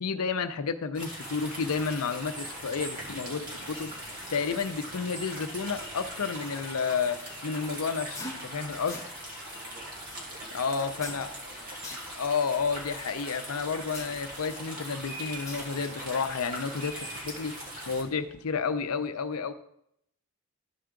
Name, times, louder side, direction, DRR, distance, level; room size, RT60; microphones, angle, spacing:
voice 1, 0.0-3.9 4.3-9.0 10.5-11.3 12.2-19.5, left 5 dB, 80° left, 10 dB, 0.6 m, -31 dB
sound 1, 1.0-18.0, equal, 40° right, 2.0 m, -40 dB
sound 2, 3.6-18.4, left 2 dB, 15° left, 0.9 m, -50 dB
voice 2, 9.5-11.7, right 2 dB, 75° right, -4 dB, 3.3 m, -55 dB
13.0 x 4.6 x 3.7 m, 0.76 s
head